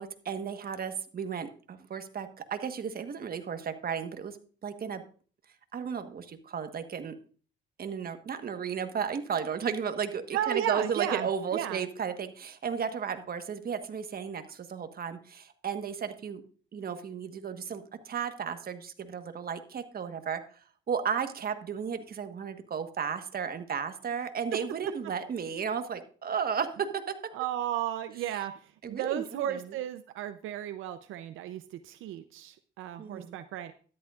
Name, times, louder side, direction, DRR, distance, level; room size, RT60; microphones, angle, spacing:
voice 1, 0.0-4.4 4.6-5.0 5.7-7.1 7.8-16.4 16.7-27.3 28.8-29.8 33.0-33.4, right 7 dB, 50° right, 8 dB, 1.4 m, -34 dB
voice 2, 10.3-11.8 27.3-28.5 28.9-33.7, right 11 dB, 90° right, 9 dB, 0.6 m, -34 dB
13.0 x 11.0 x 2.5 m, 0.40 s
cardioid pair, 90°, 20 cm